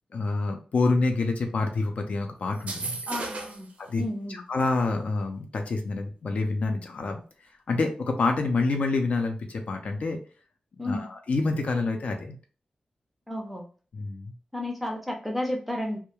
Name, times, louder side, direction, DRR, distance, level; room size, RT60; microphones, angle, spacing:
voice 1, 0.1-3.0 3.8-4.0 4.3-7.2 7.7-10.2 10.8-12.4 13.9-14.3, left 3 dB, 65° left, 4 dB, 0.4 m, -27 dB
sound 1, 2.5-3.7, right 3 dB, 65° right, 0.5 m, -34 dB
voice 2, 3.1-3.7 4.0-4.4 10.8-11.1 13.3-13.6 14.5-16.0, left 1 dB, 5° right, 2 dB, 0.5 m, -32 dB
2.2 x 2.1 x 2.9 m, 0.39 s
wide cardioid pair, 155°, 2 cm